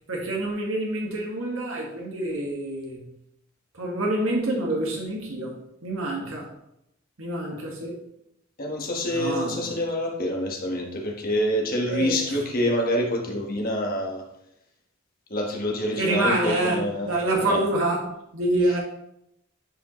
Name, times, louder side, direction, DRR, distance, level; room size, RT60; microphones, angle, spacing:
voice 1, 0.1-3.0 3.7-5.5 5.8-6.5 7.2-8.0 9.1-9.8 11.9-12.4 16.0-18.1 18.3-18.8, right 2 dB, 80° right, -2 dB, 2.0 m, -27 dB
voice 2, 8.6-14.2 15.3-17.1 17.4-17.6, left 1 dB, 45° left, 0 dB, 1.6 m, -26 dB
10.0 x 5.1 x 3.2 m, 0.79 s
head